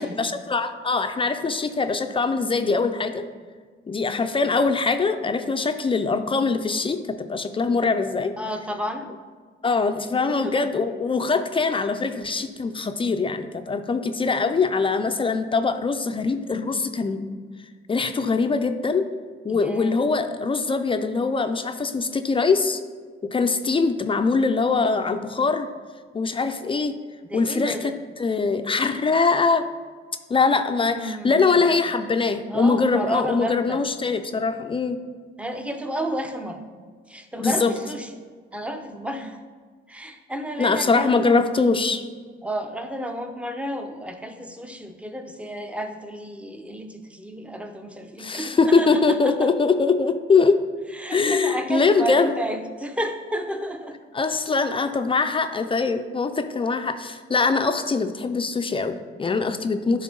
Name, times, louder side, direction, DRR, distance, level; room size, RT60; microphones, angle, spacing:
voice 1, 0.0-3.2 3.9-8.3 9.6-17.2 17.9-19.1 19.4-22.8 23.3-25.7 26.1-26.9 27.3-27.7 28.2-29.6 30.3-35.0 37.4-37.7 40.6-42.0 48.2-50.6 51.1-52.3 54.1-60.0, left 4 dB, 25° left, 8 dB, 0.4 m, -22 dB
voice 2, 8.4-9.1 10.2-10.7 19.5-20.0 27.2-28.0 30.7-31.9 32.5-33.8 35.4-36.6 37.1-38.1 38.5-39.4 39.9-41.4 42.4-49.5 50.9-54.0, right 1 dB, 5° right, 6 dB, 0.7 m, -32 dB
10.5 x 3.6 x 3.8 m, 1.6 s
cardioid pair, 90°, 20 cm